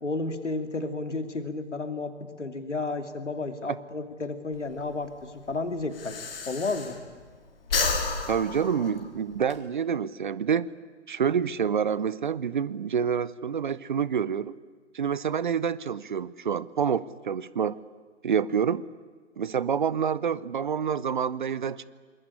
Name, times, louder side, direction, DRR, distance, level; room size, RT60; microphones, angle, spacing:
voice 1, 0.0-6.2 6.5-7.0, left 3 dB, 75° left, 8 dB, 3.0 m, -32 dB
Breathing, 4.5-7.3 7.6-9.6, left 4 dB, 50° left, 4.1 m, -31 dB
voice 2, 8.3-10.7 11.1-14.5 14.9-17.8 18.2-18.8 19.4-21.8, right 7 dB, 40° right, 19 dB, 0.7 m, -27 dB
27.0 x 21.0 x 10.0 m, 1.5 s
figure-of-eight pair, 135°, 36 cm